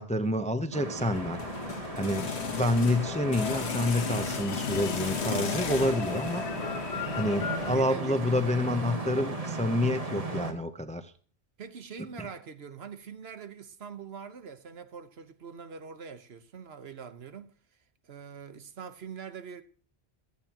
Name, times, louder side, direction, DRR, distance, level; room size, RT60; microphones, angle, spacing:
voice 1, 0.0-1.4 2.0-6.4 7.2-11.1 12.2-12.3, left 1 dB, 10° left, 0.5 m, -28 dB
sound 1, 0.7-10.5, right 2 dB, 35° right, 1.6 m, -37 dB
sound 2, 1.0-7.8, left 6 dB, 85° left, 1.4 m, -34 dB
voice 2, 7.7-8.5 9.8-10.2 11.6-17.5 18.0-19.6, right 6 dB, 70° right, 1.2 m, -44 dB
16.0 x 13.0 x 2.9 m
omnidirectional pair, 1.1 m